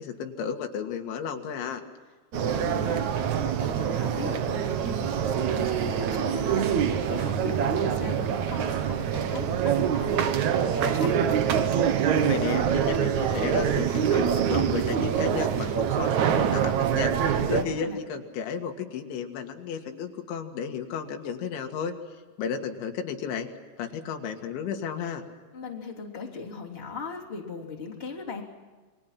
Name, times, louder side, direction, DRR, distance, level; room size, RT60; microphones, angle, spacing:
voice 1, 0.0-1.8 12.2-21.9 22.4-23.5 23.8-25.2, left 7 dB, 85° left, 4 dB, 4.2 m, -33 dB
voice 2, 2.3-11.4 17.4-18.0 25.5-28.4, left 4 dB, 15° left, -2 dB, 3.0 m, -38 dB
sound 1, 2.3-17.6, right 8 dB, 70° right, 1.8 m, -25 dB
28.0 x 22.5 x 5.9 m, 1.4 s
omnidirectional pair, 5.1 m